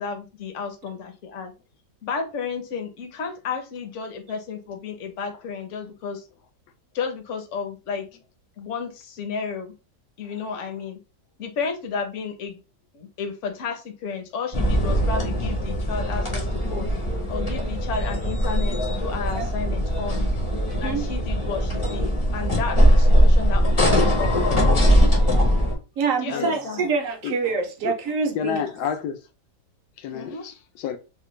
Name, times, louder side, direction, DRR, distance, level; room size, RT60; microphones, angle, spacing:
voice 1, 0.0-1.5 2.0-6.2 6.9-8.1 8.6-9.7 10.2-11.0 11.4-12.6 12.9-16.9 17.3-20.3 20.8-24.6 26.2-26.8 30.1-30.4, left 5 dB, 55° left, 0.9 m, -32 dB
sound 1, 14.5-25.7, equal, 30° left, 0.5 m, -20 dB
voice 2, 20.7-21.0 26.0-28.6, right 5 dB, 60° right, 0.9 m, -26 dB
voice 3, 28.4-29.2 30.0-31.0, left 8 dB, 80° left, 1.1 m, -29 dB
3.3 x 2.2 x 3.0 m
omnidirectional pair, 1.8 m